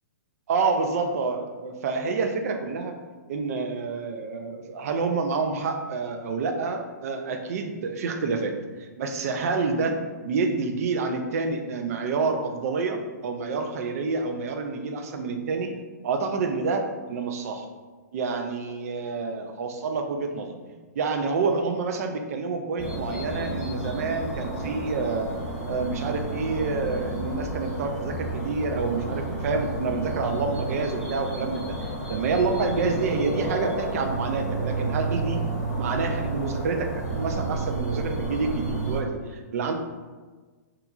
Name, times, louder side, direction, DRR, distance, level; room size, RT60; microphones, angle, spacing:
voice 1, 0.5-3.0 3.3-15.8 16.0-17.7 18.1-20.6 20.9-25.3 25.7-35.4 35.8-39.7, right 4 dB, 60° right, 5 dB, 0.4 m, -28 dB
sound 1, 22.8-39.0, right 2 dB, 5° left, 1.0 m, -31 dB
2.9 x 2.3 x 2.3 m, 1.4 s
hypercardioid pair, 140°, 9 cm